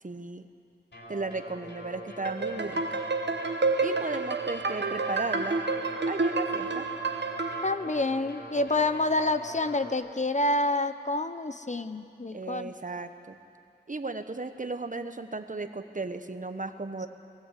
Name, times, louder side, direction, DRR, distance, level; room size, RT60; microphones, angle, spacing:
voice 1, 0.0-0.5 1.1-3.0 3.8-5.6 6.1-6.9 12.3-13.4 13.9-17.1, right 3 dB, 45° right, 9 dB, 1.0 m, -35 dB
sound 1, 0.9-9.9, equal, 85° left, 3.2 m, -44 dB
sound 2, 2.2-7.7, right 3 dB, 90° right, 0.9 m, -29 dB
voice 2, 7.6-12.7, left 2 dB, 45° left, 10 dB, 0.8 m, -28 dB
21.5 x 16.0 x 8.3 m, 2.4 s
wide cardioid pair, 60°, 18 cm